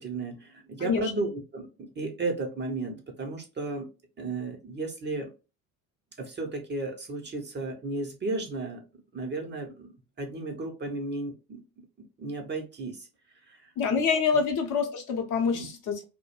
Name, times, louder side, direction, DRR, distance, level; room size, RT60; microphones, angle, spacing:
voice 1, 0.0-3.9 4.2-5.3 6.2-8.8 9.1-11.6 12.0-13.1 13.3-13.7 15.5-15.7, right 3 dB, 25° right, 0.7 m, -34 dB
voice 2, 0.8-1.1 13.8-16.0, left 6 dB, 45° left, 0.8 m, -26 dB
2.2 x 2.1 x 3.0 m
hypercardioid pair, 65°, 43 cm